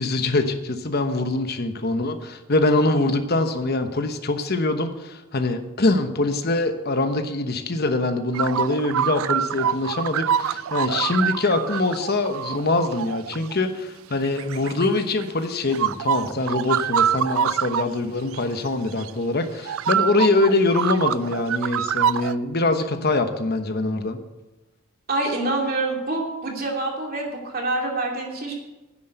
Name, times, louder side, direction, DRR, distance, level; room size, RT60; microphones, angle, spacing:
voice 1, 0.0-24.2, left 2 dB, 50° left, 7 dB, 1.1 m, -23 dB
sound 1, 8.3-13.6 14.2-15.3 15.7-17.9 18.3-18.4 19.0-19.1 19.6-22.3, right 9 dB, 70° right, 0.3 m, -25 dB
voice 2, 25.1-28.5, right 2 dB, 45° right, 0 dB, 2.8 m, -26 dB
10.5 x 7.7 x 8.0 m, 1.0 s
head